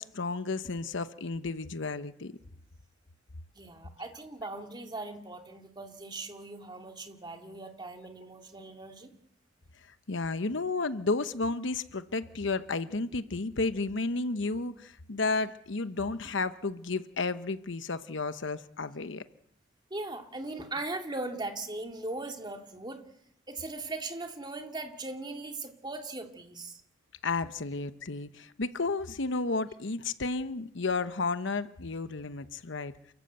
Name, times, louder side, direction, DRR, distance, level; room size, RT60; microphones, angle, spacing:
voice 1, 0.0-2.4 10.1-19.2 27.2-32.9, left 3 dB, 70° left, 1.0 m, -32 dB
voice 2, 3.5-9.1 19.9-23.0 23.5-26.8, right 2 dB, 25° right, 2.5 m, -39 dB
29.0 x 14.5 x 8.1 m
head